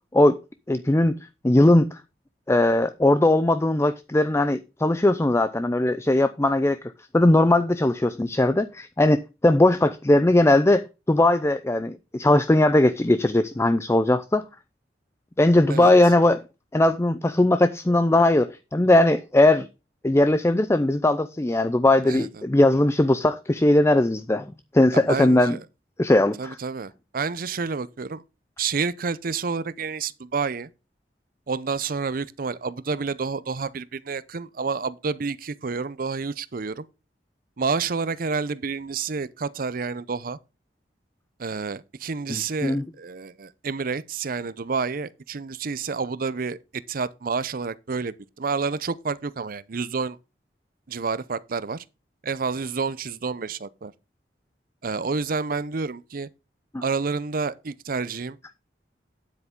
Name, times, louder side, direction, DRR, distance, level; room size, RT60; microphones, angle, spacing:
voice 1, 0.7-1.2 1.4-2.0 2.5-14.4 15.4-16.4 16.7-19.7 20.0-24.5 24.7-25.6 26.0-26.6 42.3-42.8 56.7-56.8, left 1 dB, 15° left, 0.5 m, -19 dB
voice 2, 24.9-25.6 26.4-28.2 28.6-30.7 31.5-36.9 37.6-40.4 41.4-50.2 50.9-51.8 52.2-53.9 54.8-56.3 56.8-58.4, right 4 dB, 55° right, 0.6 m, -29 dB
9.7 x 8.1 x 3.7 m
head